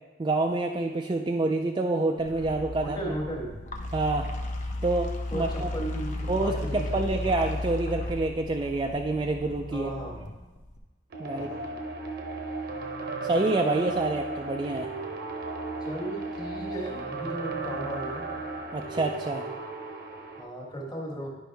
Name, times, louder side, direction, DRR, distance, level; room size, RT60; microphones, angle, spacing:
voice 1, 0.2-3.0 3.9-4.3 4.8-5.7 6.3-9.9 11.2-11.5 13.2-14.9 18.7-19.4, right 2 dB, 25° right, 2 dB, 0.3 m, -27 dB
sound 1, 2.2-10.8, left 1 dB, 40° left, 0.7 m, -35 dB
voice 2, 2.8-3.5 5.3-7.2 9.7-10.2 11.3-11.7 15.8-18.2 20.4-21.3, right 1 dB, 20° left, -2 dB, 1.4 m, -36 dB
sound 2, 11.1-20.4, right 3 dB, 50° right, 0.8 m, -35 dB
11.0 x 5.2 x 3.4 m, 1.2 s
head